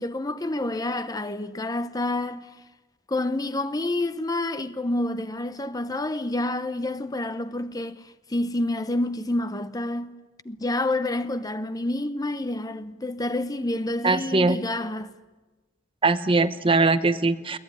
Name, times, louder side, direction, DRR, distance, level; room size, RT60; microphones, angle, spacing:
voice 1, 0.0-2.5 3.1-10.2 10.4-15.1, left 2 dB, 20° left, 0.7 m, -28 dB
voice 2, 14.0-14.6 16.0-17.6, right 3 dB, 30° right, 0.8 m, -21 dB
22.0 x 19.0 x 9.7 m
head